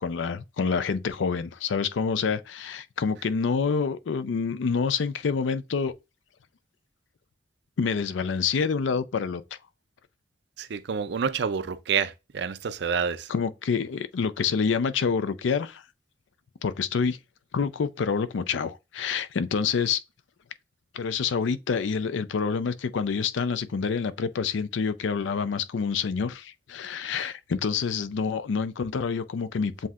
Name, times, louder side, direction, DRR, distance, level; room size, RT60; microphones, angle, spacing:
voice 1, 0.0-5.9 7.8-9.4 13.3-15.8 16.6-17.2 17.5-20.0 20.9-29.9, left 5 dB, 80° left, 0.4 m, -27 dB
voice 2, 10.6-13.3 27.1-27.3, right 6 dB, 65° right, 0.4 m, -28 dB
7.5 x 2.7 x 2.4 m
head